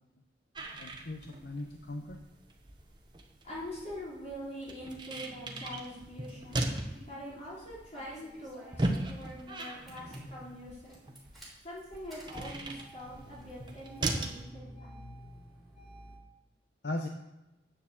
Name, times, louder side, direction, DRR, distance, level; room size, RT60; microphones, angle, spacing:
sound 1, 0.5-14.4, right 1 dB, 25° right, 1.0 m, -38 dB
voice 1, 0.8-2.2 16.8-17.1, left 2 dB, 70° left, 3 dB, 0.8 m, -38 dB
voice 2, 3.4-6.7 7.1-11.0 11.6-15.0, equal, 40° left, -6 dB, 4.0 m, -44 dB
Engine starting, 6.8-7.2 7.9-9.3 9.6-10.2 10.8-16.2, equal, ahead, 3.7 m, -52 dB
8.9 x 7.1 x 7.3 m, 0.98 s
head